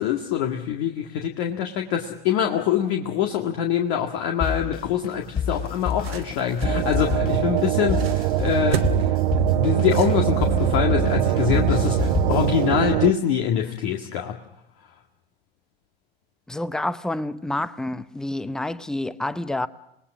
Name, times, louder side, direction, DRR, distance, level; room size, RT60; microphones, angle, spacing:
voice 1, 0.0-14.3, left 9 dB, 55° left, 2.0 m, -24 dB
sound 1, 4.4-12.9, left 7 dB, 30° left, 4.8 m, -29 dB
sound 2, 5.2-10.7, right 9 dB, 75° right, 1.6 m, -36 dB
sound 3, 6.6-13.1, right 16 dB, 55° right, 0.8 m, -23 dB
voice 2, 16.5-19.7, left 1 dB, ahead, 0.7 m, -28 dB
27.5 x 20.0 x 6.2 m
figure-of-eight pair, 85°, 30 cm